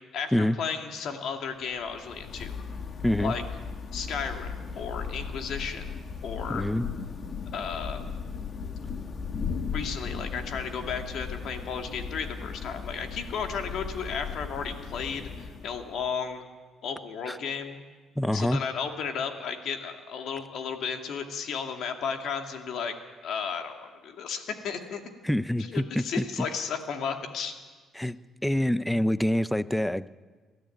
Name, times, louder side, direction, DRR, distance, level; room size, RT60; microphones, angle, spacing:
voice 1, 0.1-2.5 3.2-3.4 3.9-5.9 6.2-6.7 7.5-8.0 9.7-16.5 16.8-17.8 18.3-22.9 23.2-25.0 25.6-27.5, left 6 dB, 70° left, 4 dB, 2.3 m, -34 dB
Thunder / Rain, 1.7-16.1, left 5 dB, 45° left, 1.5 m, -37 dB
voice 2, 3.0-3.3 6.5-6.9 17.3-17.4 18.2-18.6 25.2-26.2 28.0-28.2 28.4-30.1, left 1 dB, 5° left, 16 dB, 0.6 m, -26 dB
21.0 x 14.0 x 9.3 m, 1.4 s
cardioid pair, 100°, 0 cm